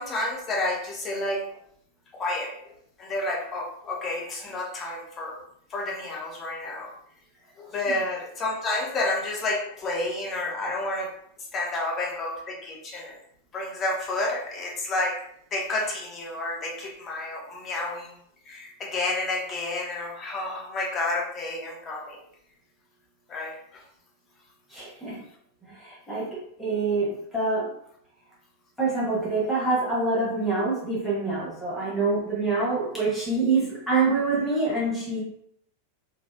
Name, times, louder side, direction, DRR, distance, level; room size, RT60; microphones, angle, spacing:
voice 1, 0.0-1.4 2.1-2.5 3.0-5.4 5.7-6.9 7.6-11.1 11.5-13.2 13.5-15.1 15.5-18.1 18.5-22.2 23.3-23.8, left 2 dB, 25° left, -2 dB, 0.8 m, -30 dB
voice 2, 24.7-25.1 25.6-27.7 28.8-35.2, right 3 dB, 5° left, -8 dB, 1.2 m, -26 dB
3.2 x 2.3 x 2.4 m, 0.71 s
figure-of-eight pair, 90°, 0 cm